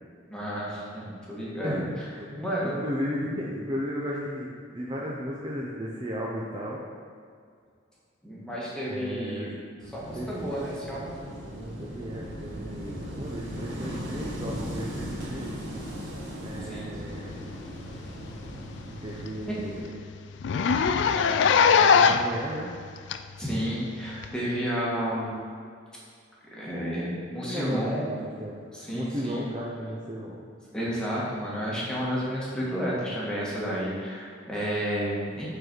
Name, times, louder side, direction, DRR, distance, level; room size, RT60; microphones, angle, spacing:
voice 1, 0.3-1.8 2.4-2.7 8.2-9.5 9.9-11.1 16.6-17.0 23.4-25.4 26.5-28.1 28.7-29.5 30.7-35.5, equal, 5° left, -7 dB, 1.5 m, -31 dB
voice 2, 2.1-6.8 8.9-9.5 10.1-10.7 11.4-15.5 16.4-17.4 19.0-19.9 21.1-22.7 27.4-28.6 28.9-30.4 35.4-35.5, equal, 25° right, -4 dB, 0.6 m, -35 dB
Wind / Waves surf, 9.8-19.8, equal, 80° right, 1.5 m, -38 dB
Zipper (clothing), 17.8-18.0 18.3-18.4 18.8-18.9 19.2-19.3 19.6-19.7 20.4-22.4 23.1-23.2 24.2-24.3, left 6 dB, 65° left, 0.3 m, -20 dB
8.0 x 4.0 x 4.6 m, 2.2 s
head